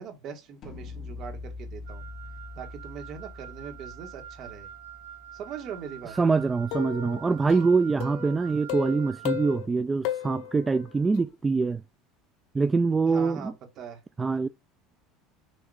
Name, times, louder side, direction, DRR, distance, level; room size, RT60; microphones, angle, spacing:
voice 1, 0.0-2.0 2.6-4.7 5.3-6.1 13.0-14.0, right 7 dB, 45° right, 1.8 m, -41 dB
sound 1, 0.6-6.6, left 3 dB, 35° left, 2.7 m, -44 dB
Wind instrument woodwind instrument, 1.9-9.6, right 11 dB, 85° right, 2.1 m, -46 dB
voice 2, 6.2-11.8 12.5-13.5 14.2-14.5, right 4 dB, 15° right, 0.3 m, -24 dB
sound 2, 6.7-8.4 8.7-9.6 10.0-11.2, left 12 dB, 70° left, 0.9 m, -34 dB
6.6 x 3.0 x 4.9 m
supercardioid pair, 135°, 0 cm